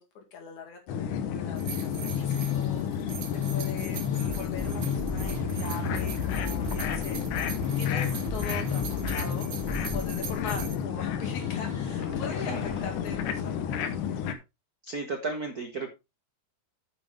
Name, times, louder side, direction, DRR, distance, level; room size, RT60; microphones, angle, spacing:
voice 1, 0.0-7.3 7.8-13.8, left 6 dB, 70° left, 2 dB, 3.6 m, -41 dB
sound 1, 0.9-14.3, left 8 dB, 90° left, 2.6 m, -32 dB
Musical instrument, 1.6-13.4, left 5 dB, 5° right, 1.6 m, -35 dB
sound 2, 1.6-10.8, right 7 dB, 85° right, 3.0 m, -42 dB
voice 2, 12.2-12.7 14.8-15.9, right 3 dB, 55° right, 5 dB, 1.0 m, -34 dB
9.3 x 7.9 x 3.5 m, 0.24 s
omnidirectional pair, 3.5 m